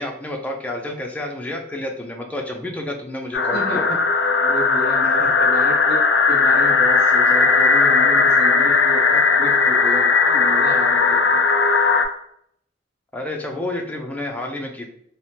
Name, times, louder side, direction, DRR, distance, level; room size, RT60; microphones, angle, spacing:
voice 1, 0.0-3.8 5.4-5.5 13.1-14.9, left 1 dB, 10° left, 1 dB, 0.4 m, -30 dB
sound 1, 3.3-12.1, left 4 dB, 75° left, 0.4 m, -17 dB
voice 2, 3.5-4.0 4.4-6.0 6.3-11.2, equal, 60° right, -3 dB, 0.7 m, -31 dB
3.2 x 2.1 x 2.7 m, 0.68 s
head